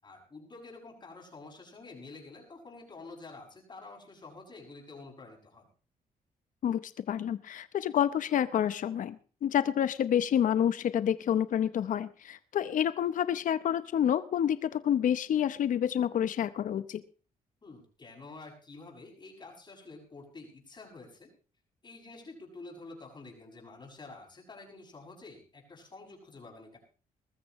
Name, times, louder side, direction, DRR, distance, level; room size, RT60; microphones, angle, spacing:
voice 1, 0.0-5.7 17.6-21.3 21.8-26.8, left 3 dB, 30° left, 1 dB, 6.9 m, -49 dB
voice 2, 6.6-17.0, left 9 dB, 60° left, 14 dB, 0.8 m, -28 dB
21.0 x 14.0 x 3.1 m, 0.37 s
cardioid pair, 105°, 15 cm